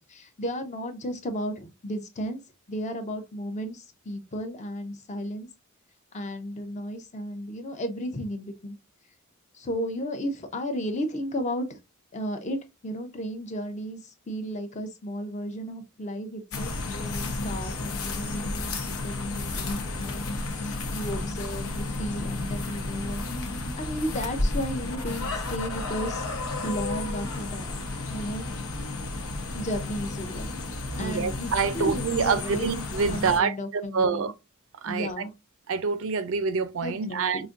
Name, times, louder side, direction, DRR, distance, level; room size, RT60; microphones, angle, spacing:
voice 1, 0.1-2.4 2.7-5.5 6.1-8.8 9.5-11.8 12.1-23.3 23.8-26.3 26.6-27.8 28.1-28.5 29.5-30.5 30.9-32.7 33.1-34.3 34.9-35.3 36.8-37.5, equal, 35° left, 0.6 m, -34 dB
sound 1, 16.5-33.4, left 2 dB, 80° left, 1.0 m, -32 dB
voice 2, 31.0-33.6 33.9-34.3 34.8-35.1 35.7-37.5, right 5 dB, 65° right, 0.5 m, -26 dB
4.9 x 2.5 x 2.5 m
head